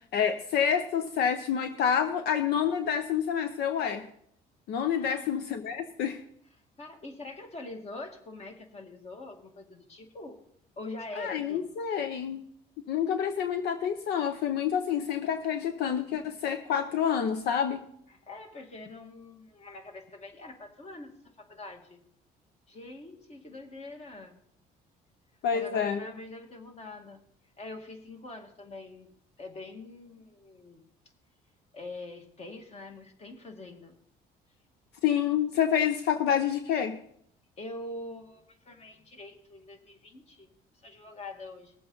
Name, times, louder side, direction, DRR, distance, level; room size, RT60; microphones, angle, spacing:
voice 1, 0.1-4.0 4.7-6.2 11.2-12.4 12.9-17.8 25.4-26.0 35.0-37.0, left 8 dB, 75° left, 8 dB, 0.8 m, -28 dB
voice 2, 6.8-10.4 10.8-11.7 18.1-21.1 21.4-22.0 22.7-24.3 25.5-27.2 27.6-29.1 29.4-30.8 31.7-33.9 37.6-40.5 40.7-41.7, left 2 dB, 40° left, 4 dB, 2.2 m, -44 dB
20.0 x 7.7 x 4.0 m, 0.67 s
cardioid pair, 110°, 17 cm